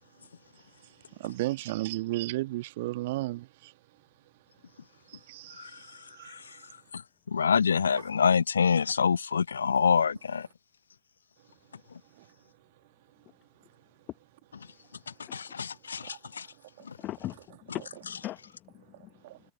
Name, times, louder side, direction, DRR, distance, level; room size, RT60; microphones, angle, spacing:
voice 1, 0.8-3.7 5.1-6.4 7.9-8.0 12.2-12.3 15.9-16.2 19.2-19.4, right 18 dB, 50° right, 1.4 m, -35 dB
voice 2, 6.2-6.6 6.9-7.0 7.3-10.5 15.3-16.5 16.9-17.0, left 6 dB, 70° left, 0.8 m, -26 dB
voice 3, 17.0-19.1, left 15 dB, 35° left, 1.0 m, -40 dB
figure-of-eight pair, 90°, 0 cm